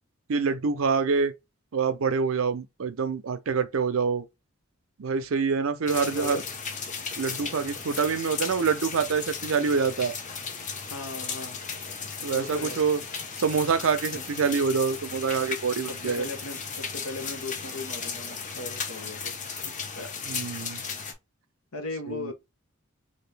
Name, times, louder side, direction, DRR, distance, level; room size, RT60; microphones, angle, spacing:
voice 1, 0.3-1.3 1.7-4.3 5.0-6.4 7.2-10.1 12.2-13.0 13.4-16.3 20.3-20.8 22.1-22.3, right 5 dB, 70° right, 0.5 m, -26 dB
sound 1, 5.9-21.1, left 5 dB, 35° left, 0.7 m, -36 dB
voice 2, 10.9-11.6 12.3-12.8 14.1-14.2 16.0-19.3 19.6-20.1 21.7-22.3, left 2 dB, 80° left, 0.8 m, -38 dB
2.9 x 2.6 x 3.2 m
head